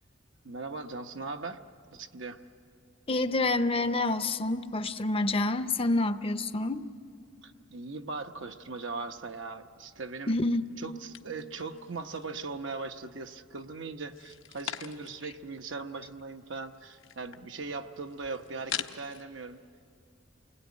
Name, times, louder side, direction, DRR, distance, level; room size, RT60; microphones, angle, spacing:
voice 1, 0.4-1.6 1.9-2.4 7.4-10.4 10.8-19.6, right 3 dB, 75° right, 6 dB, 1.0 m, -39 dB
voice 2, 3.1-6.9 10.3-10.6, left 2 dB, 30° left, 11 dB, 0.6 m, -28 dB
sound 1, 11.1-12.4 12.8-13.5 14.0-15.3 15.7-15.8 15.9-19.2, left 9 dB, 75° left, 0.9 m, -42 dB
28.5 x 20.0 x 9.6 m, 2.5 s
head